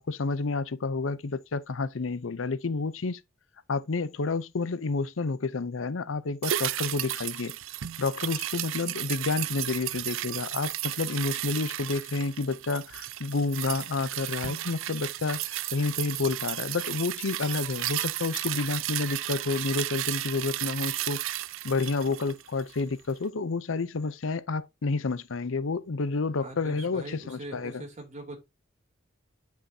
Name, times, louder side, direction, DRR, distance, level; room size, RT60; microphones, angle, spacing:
voice 1, 0.0-3.2 3.7-7.6 8.0-21.2 21.6-27.8, left 3 dB, 85° left, 0.6 m, -30 dB
sound 1, 6.4-22.9 23.2-23.3, right 14 dB, 80° right, 0.5 m, -34 dB
voice 2, 26.4-28.4, right 1 dB, 40° right, 3.1 m, -42 dB
9.6 x 5.8 x 2.8 m
head